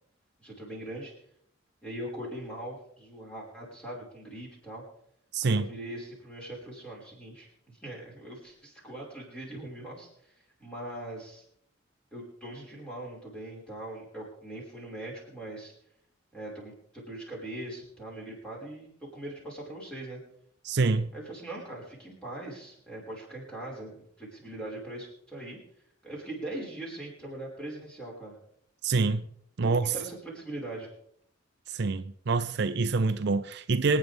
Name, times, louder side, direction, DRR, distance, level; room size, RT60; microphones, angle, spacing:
voice 1, 0.4-1.1 1.8-4.8 5.4-10.1 10.6-11.4 12.1-15.7 16.3-20.2 21.1-25.6 26.0-28.3 29.6-30.9, right 1 dB, 5° left, 5.4 m, -41 dB
voice 2, 5.3-5.7 20.6-21.1 28.8-29.3 29.6-29.9 31.7-34.0, right 4 dB, 55° right, 0.5 m, -26 dB
26.5 x 9.3 x 3.5 m
head